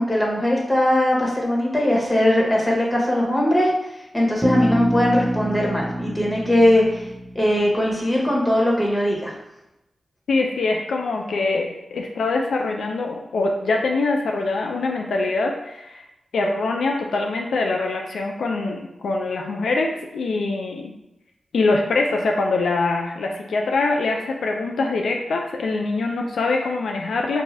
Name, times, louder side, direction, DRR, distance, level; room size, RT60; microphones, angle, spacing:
voice 1, 0.0-3.7 4.1-7.0 7.3-9.3, left 1 dB, 20° left, -3 dB, 1.3 m, -20 dB
Bass guitar, 4.4-8.1, right 1 dB, 25° right, 0.4 m, -27 dB
voice 2, 10.3-16.0 16.3-20.9 21.5-27.4, left 3 dB, 85° left, 1 dB, 0.3 m, -23 dB
4.7 x 2.4 x 2.6 m, 0.90 s
cardioid pair, 45°, 0 cm